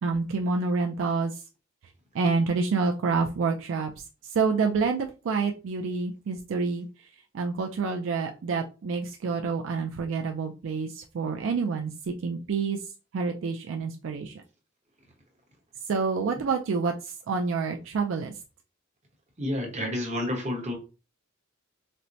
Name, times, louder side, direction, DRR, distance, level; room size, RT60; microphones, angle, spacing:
voice 1, 0.0-1.4 2.1-3.9 4.3-6.9 7.3-12.8 13.1-14.3 15.9-18.3, right 4 dB, 70° right, 3 dB, 0.4 m, -28 dB
voice 2, 19.4-20.7, left 1 dB, 35° right, 2 dB, 0.9 m, -30 dB
4.3 x 2.1 x 2.6 m, 0.32 s
head